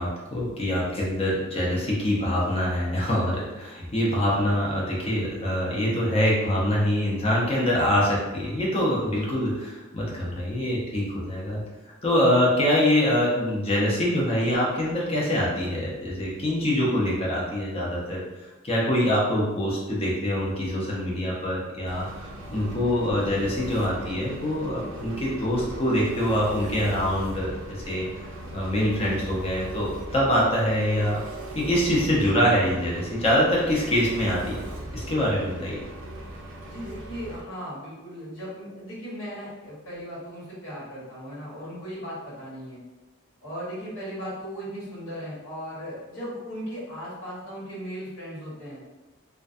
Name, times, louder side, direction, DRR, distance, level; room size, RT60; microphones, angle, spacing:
voice 1, 0.0-11.6 12.0-28.0 28.5-31.2 31.5-34.6 34.9-35.8, equal, 30° left, -5 dB, 0.6 m, -24 dB
Engine, 21.9-37.4, right 1 dB, 75° right, 0.4 m, -38 dB
voice 2, 36.6-42.8 43.4-48.8, equal, 75° left, -9 dB, 1.2 m, -37 dB
2.3 x 2.2 x 2.5 m, 1.1 s
head